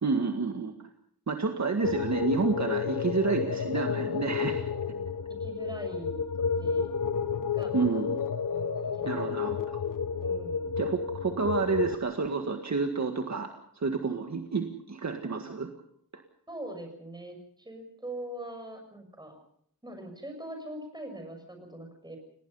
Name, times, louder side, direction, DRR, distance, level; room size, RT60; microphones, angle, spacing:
voice 1, 0.0-0.7 1.3-4.6 7.7-8.2 9.0-9.8 10.8-15.7, right 4 dB, 45° right, 4 dB, 1.8 m, -29 dB
sound 1, 1.8-11.9, left 6 dB, 55° left, 0.9 m, -31 dB
voice 2, 4.4-5.0 5.4-6.9 7.5-8.0 8.5-9.4 10.2-10.7 16.5-19.4 19.8-22.2, right 1 dB, 10° right, 4 dB, 6.4 m, -43 dB
29.0 x 18.5 x 5.6 m, 0.65 s
wide cardioid pair, 150°, 38 cm